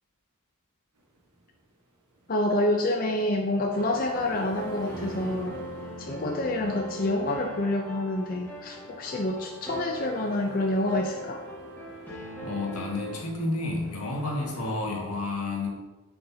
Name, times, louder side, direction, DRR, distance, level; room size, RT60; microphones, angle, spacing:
sound 1, 0.9-14.8, right 1 dB, 90° right, 1.3 m, -50 dB
voice 1, 2.3-5.6 6.0-11.4, left 1 dB, 40° left, 1 dB, 0.5 m, -27 dB
sound 2, 3.7-13.2, right 1 dB, 10° left, 1.6 m, -40 dB
voice 2, 12.4-15.7, left 2 dB, 85° left, -2 dB, 1.8 m, -30 dB
7.7 x 6.8 x 2.8 m, 1.1 s
head